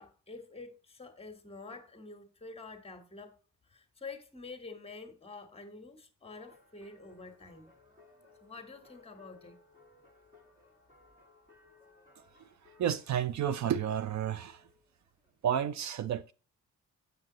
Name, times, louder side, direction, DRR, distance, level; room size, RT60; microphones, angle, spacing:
voice 1, 0.0-7.7 8.4-9.6, left 3 dB, 20° left, 1.2 m, -48 dB
sound 1, 6.2-15.4, left 3 dB, 25° right, 1.5 m, -62 dB
voice 2, 12.8-14.7 15.4-16.3, right 9 dB, 60° right, 0.5 m, -31 dB
7.6 x 6.8 x 3.8 m
wide cardioid pair, 150°, 32 cm